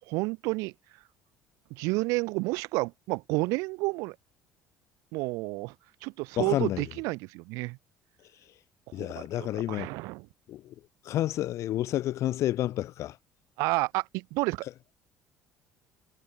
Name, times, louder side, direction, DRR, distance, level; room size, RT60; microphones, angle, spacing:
voice 1, 0.1-0.7 1.7-4.1 5.1-5.7 6.0-7.8 9.0-10.3 13.6-14.7, right 25 dB, 80° right, 2.7 m, -30 dB
voice 2, 6.4-6.8 8.9-9.9 10.5-10.7 11.0-13.1, left 13 dB, 65° left, 3.0 m, -30 dB
supercardioid pair, 85°, 6 cm